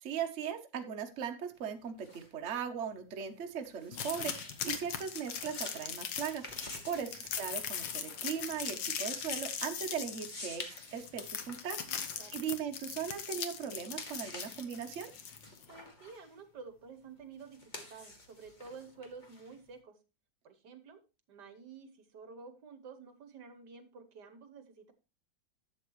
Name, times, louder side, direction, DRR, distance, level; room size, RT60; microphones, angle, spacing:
voice 1, 0.0-10.6 10.9-11.8 12.3-15.1, right 8 dB, 45° right, 5 dB, 1.1 m, -39 dB
sound 1, 1.6-13.3 13.7-19.8, left 2 dB, 25° left, 1.4 m, -50 dB
sound 2, 3.9-15.7, left 8 dB, 80° left, 1.6 m, -39 dB
voice 2, 6.5-7.1 11.9-12.4 15.7-20.0 20.4-21.0 21.3-24.9, right 5 dB, 65° right, 8 dB, 1.6 m, -51 dB
11.5 x 7.6 x 3.1 m, 0.31 s
omnidirectional pair, 2.0 m